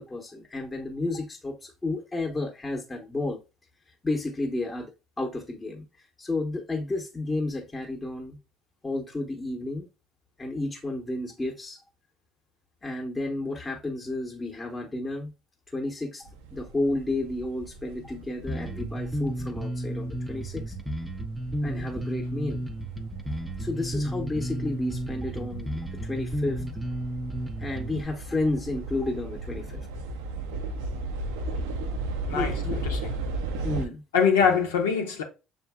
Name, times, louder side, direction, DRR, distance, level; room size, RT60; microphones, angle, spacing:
voice 1, 0.0-3.4 4.0-4.9 5.2-5.8 6.2-8.4 8.8-9.9 10.4-11.8 12.8-15.3 15.7-20.7 21.6-22.6 23.6-26.6 27.6-29.9 32.3-32.8 33.6-34.0, left 2 dB, 20° left, 0.9 m, -31 dB
sound 1, 16.3-33.9, right 2 dB, 80° right, 0.5 m, -36 dB
Bass guitar, 18.5-28.1, right 1 dB, 5° right, 0.6 m, -33 dB
voice 2, 32.3-33.1 34.1-35.2, left 6 dB, 90° left, 0.9 m, -24 dB
6.8 x 2.6 x 2.2 m
hypercardioid pair, 70°, 0 cm